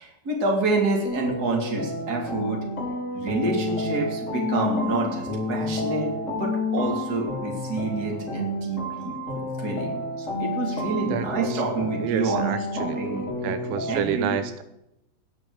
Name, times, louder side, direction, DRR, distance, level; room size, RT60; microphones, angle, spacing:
voice 1, 0.0-2.6 3.1-13.5 13.9-14.4, right 3 dB, 25° right, 0 dB, 2.9 m, -28 dB
sound 1, 1.0-14.0, left 2 dB, 30° left, 1.3 m, -30 dB
voice 2, 11.1-11.6 12.0-14.6, right 10 dB, 80° right, 11 dB, 3.3 m, -30 dB
19.0 x 6.4 x 6.6 m, 0.83 s
omnidirectional pair, 5.8 m